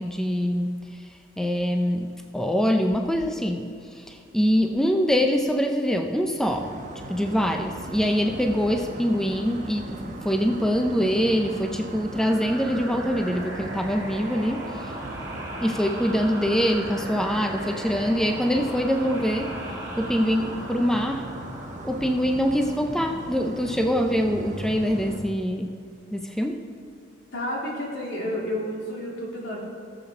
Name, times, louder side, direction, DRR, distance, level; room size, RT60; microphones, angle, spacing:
voice 1, 0.0-14.9 15.6-19.6 20.0-21.3 21.8-25.7 26.1-26.7, equal, 5° left, 4 dB, 0.4 m, -24 dB
sound 1, 6.5-25.2, right 1 dB, 40° right, 1.0 m, -38 dB
sound 2, 12.1-23.5, right 1 dB, 15° right, 2.5 m, -38 dB
voice 2, 27.3-29.6, left 1 dB, 75° left, -4 dB, 2.8 m, -30 dB
18.0 x 7.2 x 3.6 m, 2.4 s
head